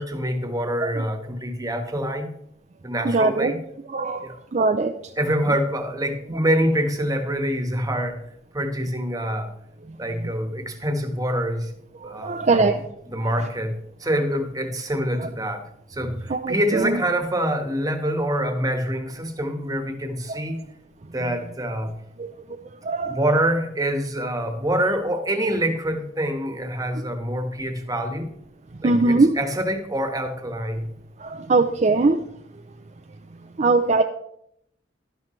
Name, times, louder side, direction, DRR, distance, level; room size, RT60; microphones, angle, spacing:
voice 1, 0.0-2.3 2.8-3.6 4.2-4.4 5.2-8.2 8.5-9.5 10.0-11.7 12.0-12.8 13.1-13.7 14.0-15.6 15.9-20.6 21.1-21.9 23.1-28.3 28.8-30.9, equal, 20° right, 6 dB, 1.4 m, -25 dB
voice 2, 3.0-3.5 3.9-4.9 12.0-12.8 16.3-17.0 20.3-20.4 22.2-22.3 22.8-23.2 28.7-29.4 31.2-32.2 33.6-34.0, right 3 dB, 40° right, 5 dB, 0.5 m, -21 dB
12.0 x 11.0 x 3.2 m, 0.74 s
head